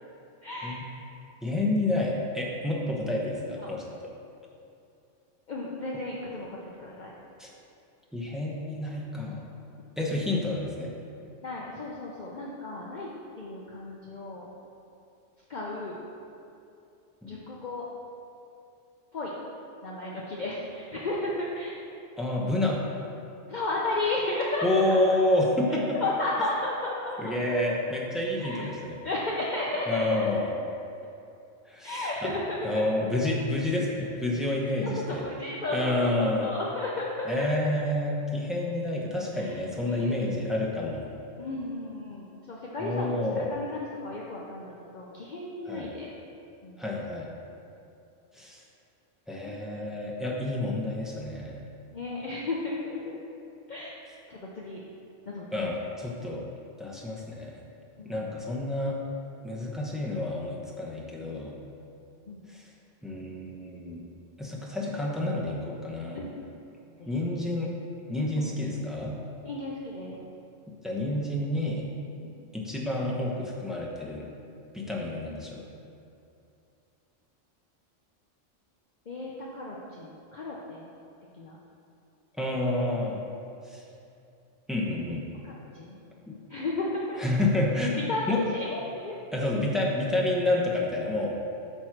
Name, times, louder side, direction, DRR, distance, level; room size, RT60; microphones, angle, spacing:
voice 1, 0.4-0.8 2.8-2.9 3.6-3.7 5.5-7.1 11.4-13.1 13.4-14.5 15.5-16.0 17.2-17.9 19.1-19.3 19.8-21.8 23.5-25.2 25.7-27.6 28.4-28.7 29.0-30.4 31.8-32.8 34.8-37.5 39.4-39.5 39.8-40.2 41.4-43.2 43.5-46.1 46.6-46.8 51.9-53.2 53.7-54.0 54.3-54.8 55.3-55.7 58.0-58.3 62.3-62.4 66.1-66.3 67.0-67.3 68.4-68.5 69.4-70.2 72.2-72.3 79.1-80.9 81.4-81.6 85.4-86.0 86.5-87.2 88.1-89.2, left 2 dB, 45° left, -4 dB, 0.7 m, -33 dB
voice 2, 1.4-4.1 7.4-7.5 8.1-9.4 10.0-10.9 17.2-17.4 22.2-22.8 24.6-26.0 27.2-29.0 29.9-30.5 31.7-32.3 32.6-35.2 35.7-36.5 37.3-41.1 42.8-43.5 45.6-45.9 46.8-47.3 48.3-48.6 49.3-51.6 55.5-56.4 56.8-57.6 58.0-59.0 59.4-61.6 62.5-62.6 63.0-64.0 64.4-66.2 67.1-67.7 68.1-69.1 70.8-71.9 72.5-74.2 74.7-75.6 82.4-83.2 83.7-83.8 84.7-85.2 86.3-86.4 87.2-88.0 88.3-88.4 89.3-91.3, left 1 dB, ahead, -4 dB, 0.8 m, -29 dB
9.1 x 3.2 x 5.9 m, 2.6 s
omnidirectional pair, 1.3 m